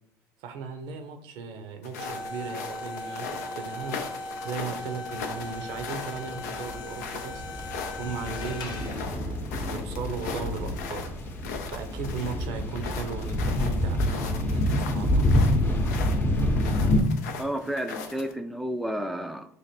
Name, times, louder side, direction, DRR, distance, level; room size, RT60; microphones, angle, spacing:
voice 1, 0.4-7.5 8.0-11.1 11.7-15.3, right 5 dB, 70° right, 7 dB, 0.6 m, -37 dB
sound 1, 1.8-18.3, left 5 dB, 90° left, 0.5 m, -39 dB
sound 2, 2.0-9.2, left 2 dB, 55° left, 0.8 m, -38 dB
sound 3, 5.3-5.4 5.7-5.9 6.2-17.0, left 1 dB, 25° left, 0.7 m, -27 dB
voice 2, 17.4-19.5, equal, ahead, 7 dB, 0.4 m, -31 dB
3.2 x 2.5 x 4.1 m, 0.71 s
hypercardioid pair, 75°, 9 cm